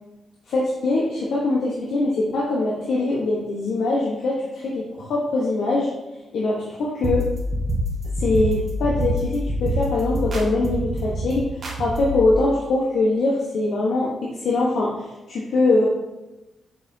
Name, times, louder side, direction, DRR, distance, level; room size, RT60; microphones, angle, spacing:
voice 1, 0.5-5.9 6.3-7.3 8.2-11.5 11.8-15.9, left 2 dB, 80° left, -4 dB, 1.0 m, -22 dB
sound 1, 7.0-12.3, equal, 40° right, 1.0 m, -26 dB
6.8 x 5.5 x 2.7 m, 1.0 s
wide cardioid pair, 180°, 0 cm